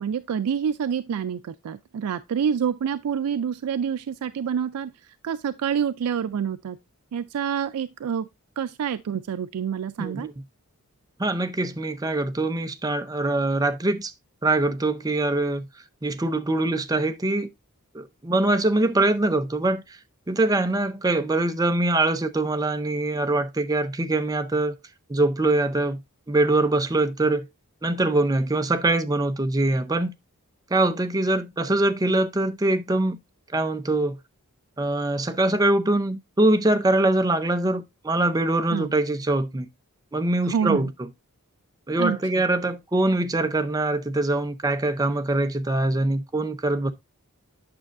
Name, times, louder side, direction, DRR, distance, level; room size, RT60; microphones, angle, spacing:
voice 1, 0.0-4.9 5.2-6.8 7.1-8.3 8.6-10.3 38.7-38.9 40.4-40.9 42.0-42.2, right 7 dB, 90° right, 0.4 m, -27 dB
voice 2, 10.0-10.3 11.2-14.1 14.4-15.7 16.0-17.5 17.9-19.8 20.3-24.7 25.1-26.0 26.3-27.4 27.8-30.1 30.7-33.2 33.5-34.2 34.8-39.7 40.1-40.9 41.9-46.9, right 2 dB, 15° right, 0.5 m, -23 dB
8.7 x 6.2 x 2.5 m
head